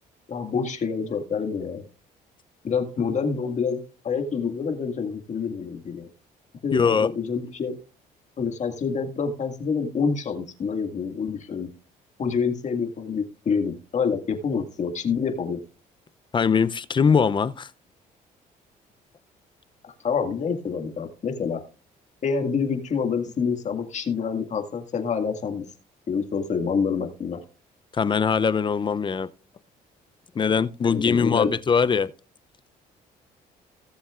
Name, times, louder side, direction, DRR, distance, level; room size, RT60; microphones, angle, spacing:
voice 1, 0.3-1.9 2.6-6.1 6.6-7.8 8.4-11.7 12.2-15.6 20.0-21.6 22.2-25.6 26.1-27.4 30.9-31.5, left 5 dB, 45° left, 2.0 m, -27 dB
voice 2, 6.7-7.1 16.3-17.7 27.9-29.3 30.4-32.1, left 6 dB, 30° left, 0.5 m, -21 dB
17.5 x 7.2 x 2.4 m
cardioid pair, 90°, 16 cm